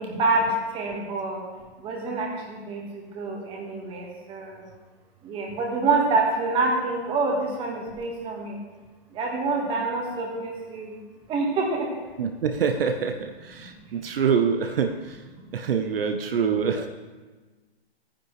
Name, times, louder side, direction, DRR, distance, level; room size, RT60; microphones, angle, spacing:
voice 1, 0.0-1.4 1.8-2.8 3.1-4.6 5.2-8.6 9.1-10.9 11.3-11.9, right 3 dB, 15° right, 0 dB, 1.6 m, -26 dB
voice 2, 12.2-14.9 15.5-16.9, right 6 dB, 65° right, 6 dB, 0.9 m, -25 dB
14.0 x 9.9 x 3.2 m, 1.3 s
hypercardioid pair, 150°, 31 cm